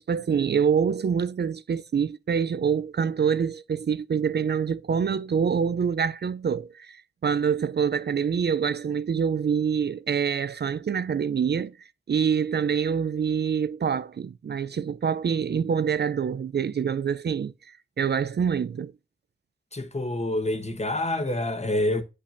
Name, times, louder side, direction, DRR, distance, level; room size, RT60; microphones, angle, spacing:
voice 1, 0.0-17.5 18.0-18.9, right 7 dB, 60° right, 0.4 m, -26 dB
voice 2, 19.7-22.0, left 1 dB, 35° left, 1.1 m, -27 dB
8.4 x 5.3 x 2.5 m
wide cardioid pair, 55°, 20 cm